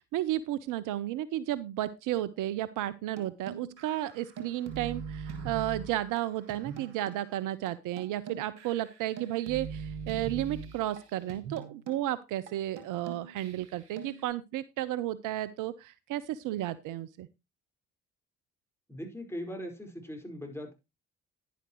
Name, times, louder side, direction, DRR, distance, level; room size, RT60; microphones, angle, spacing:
voice 1, 0.0-17.3, right 14 dB, 60° right, 16 dB, 0.6 m, -33 dB
sound 1, 3.2-7.3 7.7-7.8 8.0-11.0 11.3-12.0 12.5-12.6 12.8-14.2, right 6 dB, 80° right, 1.6 m, -42 dB
voice 2, 18.9-20.7, equal, 5° left, 2 dB, 4.9 m, -40 dB
10.5 x 10.0 x 3.0 m, 0.24 s
hypercardioid pair, 45°, 35 cm